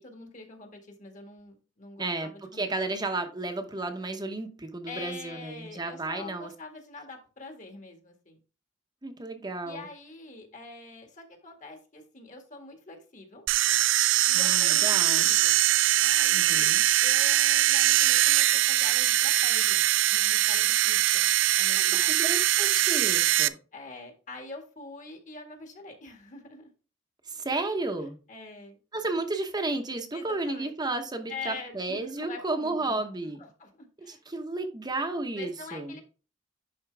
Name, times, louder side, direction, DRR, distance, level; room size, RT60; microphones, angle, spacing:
voice 1, 0.0-2.6 2.9-3.0 4.9-8.4 9.6-13.4 14.3-15.5 16.0-16.7 17.0-21.3 21.6-22.3 23.7-26.7 28.3-28.8 30.1-30.7 31.3-33.0 33.4-34.2 35.4-36.0, left 3 dB, 40° left, 1.9 m, -44 dB
voice 2, 2.0-6.5 9.0-9.9 14.3-15.3 16.3-16.8 21.8-23.6 27.2-28.2 28.9-33.4 34.0-36.0, right 2 dB, 20° right, 0.9 m, -33 dB
sound 1, 13.5-23.5, right 14 dB, 85° right, 0.5 m, -22 dB
11.0 x 4.4 x 3.4 m
head